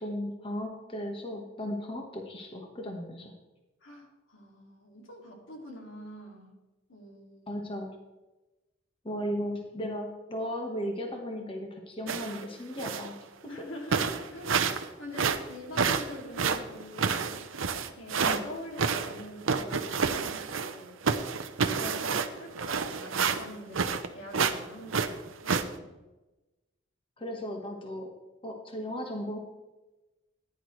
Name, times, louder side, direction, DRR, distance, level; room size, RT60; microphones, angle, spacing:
voice 1, 0.0-3.3 7.5-7.9 9.0-13.2 13.4-13.5 18.2-18.4 21.8-22.1 27.2-28.1 28.4-29.4, equal, 25° left, 2 dB, 1.3 m, -36 dB
voice 2, 3.8-6.5 6.9-7.5 13.5-17.4 17.8-21.0 22.0-25.9, left 1 dB, 80° left, 1 dB, 2.4 m, -45 dB
sound 1, 12.1-12.4 12.8-13.1 13.6-13.7 13.9-14.9 15.1-18.4 18.8-20.8 21.0-24.1 24.3-24.6 24.9-25.6, right 5 dB, 90° right, 0.8 m, -29 dB
15.0 x 10.5 x 3.2 m, 1.1 s
head